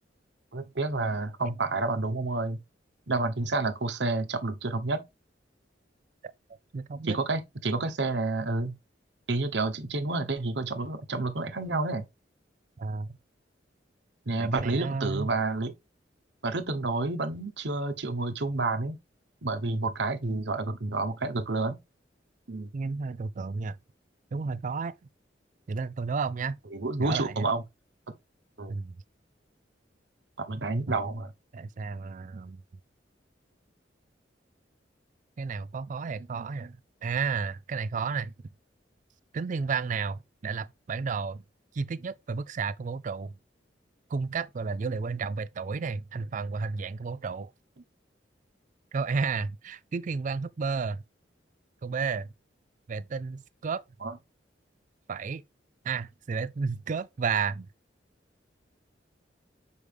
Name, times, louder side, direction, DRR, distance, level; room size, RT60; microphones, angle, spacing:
voice 1, 0.5-2.6 3.1-5.0 7.1-8.7 9.3-12.0 14.3-15.8 16.4-18.9 19.4-21.8 22.5-22.7 26.7-27.6 28.6-28.7 30.4-31.3 54.0-54.2, right 3 dB, 70° right, 1.0 m, -29 dB
voice 2, 6.7-7.2 12.8-13.2 14.4-15.3 22.7-23.8 24.3-24.9 25.7-26.6 27.0-27.5 28.7-29.0 30.9-31.0 31.5-32.6 35.4-38.3 39.3-41.4 41.7-43.3 44.1-47.5 48.9-51.0 51.8-52.3 52.9-53.8 55.1-55.4 55.8-57.7, right 5 dB, 45° right, 0.4 m, -32 dB
6.5 x 4.8 x 3.4 m
head